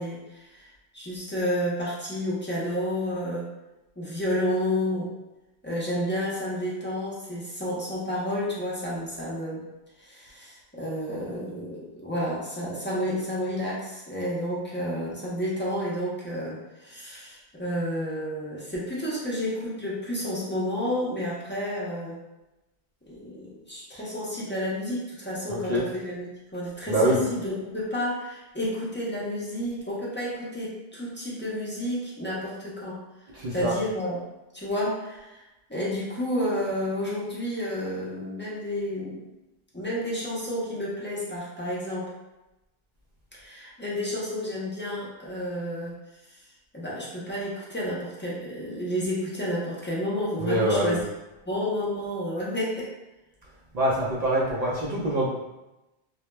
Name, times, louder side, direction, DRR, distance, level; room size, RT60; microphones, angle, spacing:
voice 1, 0.0-3.5 4.0-5.1 5.6-9.6 10.0-22.2 23.1-26.3 26.5-33.0 33.5-34.2 34.5-35.4 35.7-39.2 39.7-42.1 43.3-46.0 46.3-46.4 46.7-51.0 51.5-52.9, equal, 20° left, -7 dB, 0.3 m, -30 dB
voice 2, 25.5-25.9 26.9-27.2 33.3-33.8 50.4-51.0 53.7-55.3, right 1 dB, 55° right, -5 dB, 0.5 m, -25 dB
2.1 x 2.1 x 3.0 m, 0.99 s
omnidirectional pair, 1.0 m